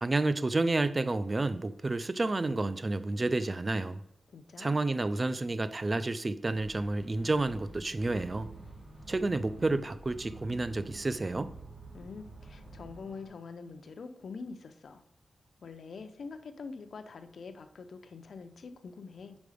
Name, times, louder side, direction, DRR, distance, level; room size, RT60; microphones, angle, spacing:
voice 1, 0.0-4.0 4.6-8.5 9.1-11.5, right 2 dB, 35° right, 13 dB, 0.4 m, -30 dB
voice 2, 4.3-4.8 11.9-15.0 15.6-19.4, left 4 dB, 75° left, 8 dB, 0.6 m, -45 dB
Elephant & Castle - Middle of roundabout, 6.5-13.0, right 1 dB, 5° right, 0.9 m, -52 dB
sound 1, 8.0-13.3, right 5 dB, 70° right, 1.8 m, -50 dB
5.2 x 4.7 x 5.0 m, 0.78 s
wide cardioid pair, 85°, 0 cm